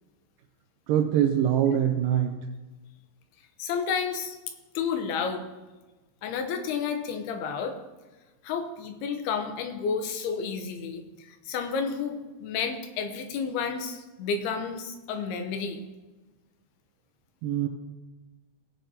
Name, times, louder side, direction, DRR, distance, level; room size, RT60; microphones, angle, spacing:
voice 1, 0.9-2.4 17.4-17.7, right 10 dB, 80° right, 2 dB, 2.1 m, -23 dB
voice 2, 3.6-4.4 4.7-5.4 6.2-7.8 8.4-15.8, left 6 dB, 85° left, 6 dB, 2.9 m, -31 dB
18.5 x 7.4 x 2.8 m, 1.2 s
omnidirectional pair, 4.5 m